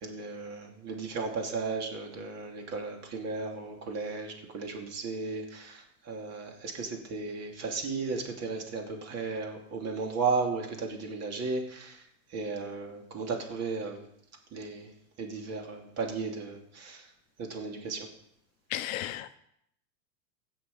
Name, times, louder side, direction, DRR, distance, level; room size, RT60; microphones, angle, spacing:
voice 1, 0.0-12.0 12.3-14.1 14.5-14.9 15.2-17.1 17.4-18.1, right 4 dB, 30° right, 2.6 m, -35 dB
voice 2, 18.7-19.4, left 14 dB, 55° left, 0.8 m, -34 dB
16.0 x 6.2 x 5.5 m
supercardioid pair, 135°, 49 cm